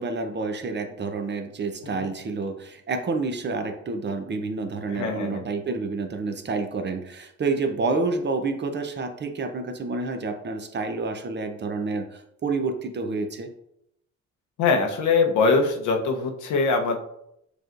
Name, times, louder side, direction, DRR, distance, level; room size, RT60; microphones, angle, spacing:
voice 1, 0.0-13.5, right 3 dB, 35° right, 6 dB, 0.7 m, -29 dB
voice 2, 1.8-2.1 4.9-5.5 14.6-17.0, left 4 dB, 80° left, 4 dB, 0.9 m, -23 dB
6.6 x 3.1 x 2.5 m, 0.77 s
cardioid pair, 90°, 30 cm